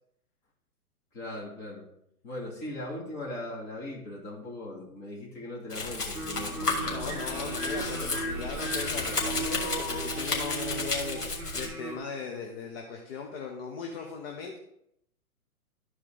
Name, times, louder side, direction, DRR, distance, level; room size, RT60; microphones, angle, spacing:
voice 1, 1.1-1.9 2.2-7.2, left 1 dB, 20° left, -3 dB, 2.9 m, -39 dB
Domestic sounds home sounds, 5.7-11.7, left 3 dB, 85° left, 2.5 m, -32 dB
sound 1, 6.1-12.0, right 2 dB, 5° right, 1.7 m, -37 dB
voice 2, 6.9-14.6, left 5 dB, 40° left, 2 dB, 1.2 m, -38 dB
13.0 x 4.8 x 3.9 m, 0.76 s
hypercardioid pair, 125°, 45 cm